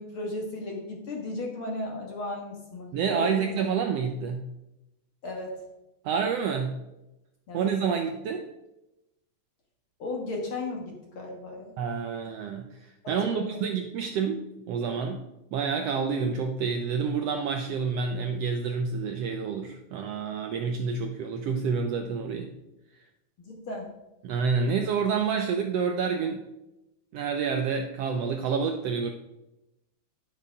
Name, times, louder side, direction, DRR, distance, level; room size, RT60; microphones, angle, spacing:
voice 1, 0.0-3.6 5.2-5.6 7.5-7.7 10.0-11.7 13.0-13.6 23.5-23.9, left 2 dB, 50° left, 0 dB, 1.9 m, -35 dB
voice 2, 2.9-4.4 6.0-6.7 7.5-8.5 11.8-12.8 13.1-15.2 15.5-22.5 24.2-26.4 27.1-29.1, right 6 dB, 75° right, 4 dB, 1.5 m, -28 dB
10.5 x 6.9 x 5.1 m, 0.94 s
omnidirectional pair, 3.5 m